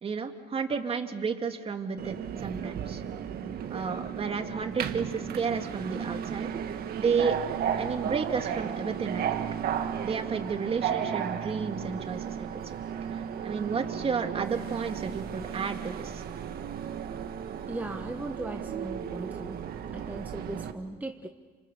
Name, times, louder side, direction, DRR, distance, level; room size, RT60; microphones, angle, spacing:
voice 1, 0.0-3.0 3.7-6.5 7.0-7.4 7.8-9.4 10.0-12.7 13.1-16.2, right 5 dB, 35° right, 5 dB, 2.4 m, -32 dB
Subway metro underground, 2.0-20.7, right 8 dB, 65° right, 1.8 m, -34 dB
voice 2, 17.7-19.6 19.9-21.3, right 2 dB, 10° right, 4 dB, 1.3 m, -38 dB
30.0 x 27.0 x 7.0 m, 1.5 s
cardioid pair, 110°, 17 cm